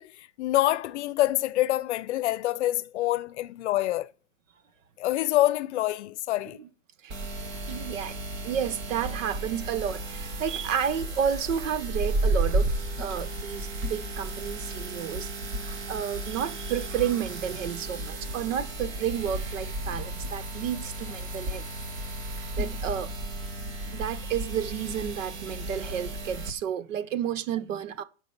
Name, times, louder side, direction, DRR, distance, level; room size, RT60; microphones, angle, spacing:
voice 1, 0.0-4.1 5.0-6.6, left 15 dB, 60° left, 0.7 m, -26 dB
sound 1, 7.1-26.5, right 1 dB, 35° right, 1.8 m, -33 dB
voice 2, 7.7-12.7 13.0-15.3 15.6-21.7 22.6-23.1 23.9-28.0, right 9 dB, 75° right, 1.4 m, -31 dB
11.0 x 5.3 x 7.9 m
supercardioid pair, 165°, 39 cm